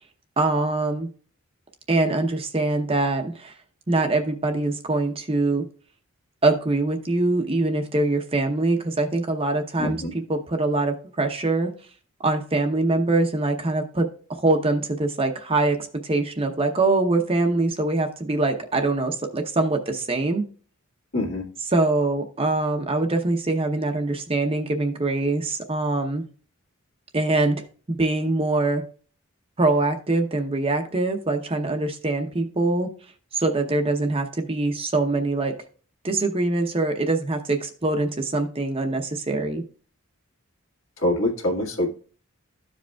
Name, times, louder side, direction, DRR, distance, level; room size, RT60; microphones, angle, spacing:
voice 1, 0.4-1.1 1.9-3.5 3.9-5.6 6.4-10.0 10.3-11.7 12.2-15.8 16.0-20.4 21.7-26.2 27.1-27.6 28.0-28.8 29.6-32.9 33.3-35.5 36.0-39.6, right 2 dB, 25° right, 5 dB, 0.8 m, -23 dB
voice 2, 9.8-10.1 21.1-21.5 41.0-41.9, left 1 dB, 65° left, 0 dB, 1.8 m, -24 dB
13.5 x 5.0 x 2.3 m, 0.41 s
head